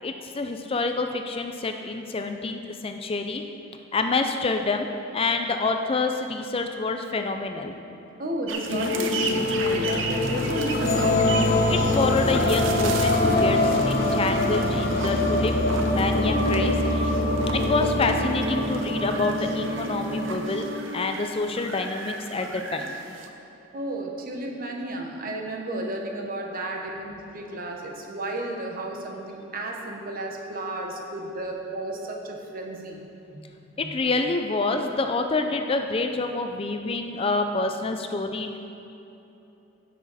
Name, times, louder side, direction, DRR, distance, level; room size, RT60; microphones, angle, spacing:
voice 1, 0.0-4.9 5.1-7.8 11.7-17.1 17.5-20.7 20.9-22.9 33.8-38.6, left 3 dB, 30° left, 5 dB, 0.4 m, -27 dB
voice 2, 8.2-11.3 23.7-33.0 33.3-33.4 33.8-33.9, right 1 dB, 45° right, 1 dB, 1.1 m, -33 dB
sound 1, 8.5-23.3, right 4 dB, 70° right, 0.8 m, -37 dB
sound 2, 8.7-21.6, left 1 dB, 50° left, 0.8 m, -24 dB
16.0 x 6.3 x 4.1 m, 3.0 s
head